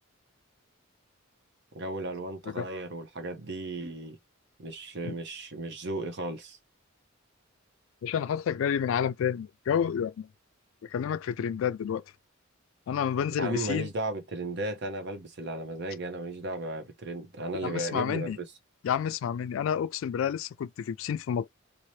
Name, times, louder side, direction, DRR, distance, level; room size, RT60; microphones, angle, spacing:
voice 1, 1.7-4.2 4.6-6.6 13.4-18.5, right 2 dB, 55° right, 0.8 m, -35 dB
voice 2, 8.0-10.3 10.8-12.0 12.9-13.9 17.6-18.4 18.8-21.5, left 8 dB, 70° left, 0.3 m, -29 dB
2.8 x 2.1 x 3.0 m
head